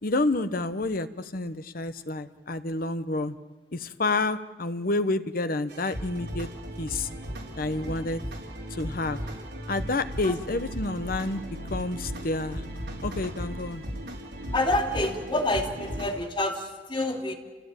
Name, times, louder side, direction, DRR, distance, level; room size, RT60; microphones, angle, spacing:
voice 1, 0.0-3.4 3.7-6.5 6.8-7.1 7.6-8.2 8.7-9.2 9.7-11.4 11.7-12.6 13.0-13.8, left 2 dB, 55° left, 11 dB, 1.0 m, -29 dB
sound 1, 5.7-16.1, equal, 75° right, 4.6 m, -36 dB
voice 2, 7.7-8.1 10.2-10.4 14.5-17.3, left 1 dB, 30° left, 1 dB, 2.8 m, -28 dB
29.5 x 16.0 x 9.0 m, 1.4 s
head